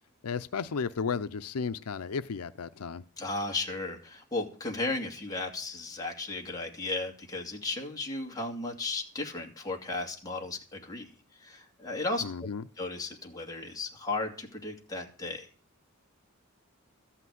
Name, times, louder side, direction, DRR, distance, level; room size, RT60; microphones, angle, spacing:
voice 1, 0.2-3.0 12.2-12.6, left 5 dB, 90° left, 0.6 m, -33 dB
voice 2, 3.2-11.1 11.4-12.2 12.8-15.5, left 2 dB, 15° left, 2.3 m, -35 dB
14.0 x 5.9 x 9.5 m
head